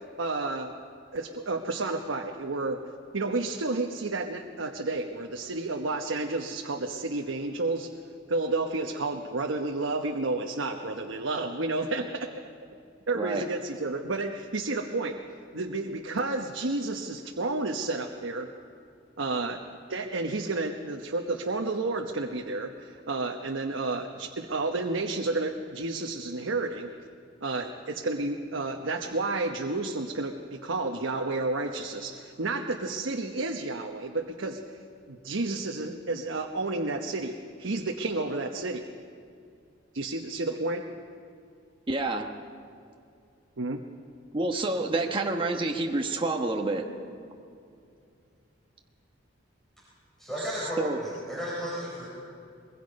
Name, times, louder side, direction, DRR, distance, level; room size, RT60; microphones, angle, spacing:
voice 1, 0.2-0.7 1.1-2.8 3.1-7.9 8.3-12.5 13.1-15.2 15.5-18.5 19.2-19.6 19.9-26.9 27.4-34.6 35.1-38.8 39.9-40.8 43.6-43.8, right 2 dB, 80° right, 2 dB, 1.1 m, -31 dB
voice 2, 13.1-13.4 41.9-42.2 44.3-46.8 50.8-51.0, right 2 dB, 25° right, 1 dB, 1.2 m, -28 dB
voice 3, 50.2-52.1, equal, ahead, -7 dB, 5.0 m, -34 dB
23.5 x 22.0 x 5.4 m, 2.5 s
head